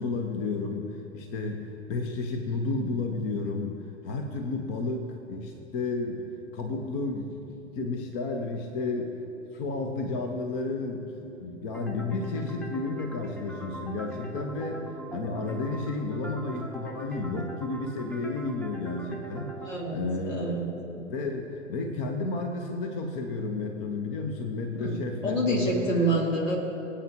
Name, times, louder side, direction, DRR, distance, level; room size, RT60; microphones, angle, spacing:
voice 1, 0.0-6.2 6.5-9.1 9.5-14.8 15.1-19.5 19.9-26.2, left 3 dB, 45° left, 4 dB, 1.2 m, -32 dB
sound 1, 11.7-19.7, right 3 dB, 5° left, 0.8 m, -41 dB
voice 2, 19.6-20.0 20.3-20.7 24.8-25.0 25.2-26.6, right 1 dB, 80° left, 0 dB, 2.5 m, -27 dB
24.0 x 8.7 x 3.0 m, 2.9 s
figure-of-eight pair, 95°, 38 cm